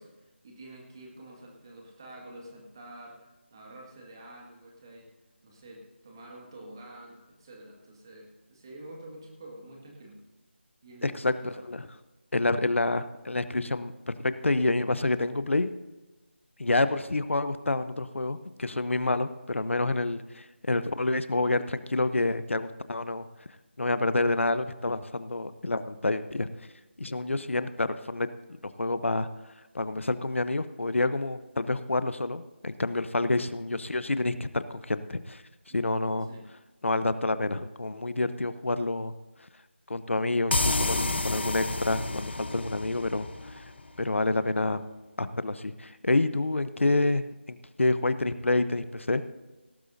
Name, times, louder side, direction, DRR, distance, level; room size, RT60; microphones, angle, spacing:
voice 1, 0.0-5.1 5.4-10.2 10.8-11.6 35.7-35.9 36.2-36.5, right 1 dB, 20° right, -1 dB, 2.0 m, -48 dB
voice 2, 11.0-11.3 11.7-11.9 12.3-15.7 16.6-23.2 23.8-26.5 27.0-28.3 28.8-29.3 29.7-35.4 35.7-36.3 36.8-39.1 39.9-43.6 44.0-44.8 45.2-49.2, left 2 dB, 85° left, 12 dB, 0.9 m, -28 dB
sound 1, 40.5-44.0, left 2 dB, 60° left, 1.1 m, -30 dB
18.0 x 12.5 x 2.7 m, 1.1 s
figure-of-eight pair, 175°, 7 cm